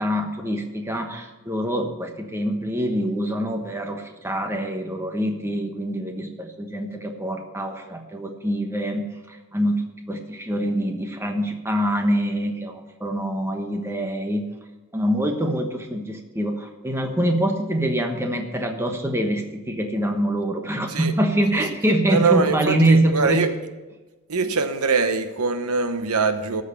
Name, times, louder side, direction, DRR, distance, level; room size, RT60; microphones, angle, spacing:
voice 1, 0.0-14.5 14.9-23.4, right 1 dB, 10° right, 4 dB, 1.1 m, -25 dB
voice 2, 22.1-23.5 24.3-26.6, right 4 dB, 90° right, 10 dB, 0.9 m, -23 dB
12.5 x 6.5 x 7.0 m, 1.2 s
head